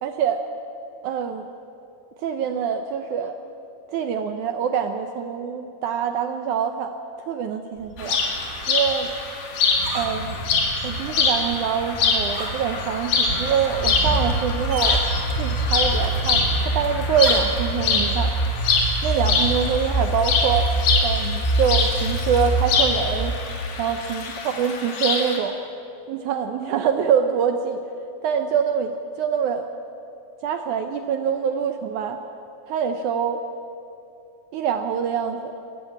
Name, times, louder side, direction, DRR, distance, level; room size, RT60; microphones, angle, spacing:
voice 1, 0.0-0.4 1.0-1.5 2.2-3.3 3.9-6.9 7.3-8.2 8.7-9.1 9.9-10.4 10.8-15.0 15.4-18.3 19.0-20.7 21.0-23.3 23.8-24.3 24.6-25.5 26.1-27.8 28.2-29.6 30.4-32.2 32.7-33.4 34.5-35.5, right 7 dB, 75° right, 6 dB, 1.8 m, -25 dB
sound 1, 7.8-17.8, right 2 dB, 25° right, 2.4 m, -33 dB
sound 2, 8.0-25.4, left 4 dB, 65° left, 3.7 m, -25 dB
sound 3, 13.7-23.3, right 2 dB, 10° left, 1.4 m, -25 dB
23.0 x 14.5 x 8.6 m, 2.8 s
omnidirectional pair, 4.3 m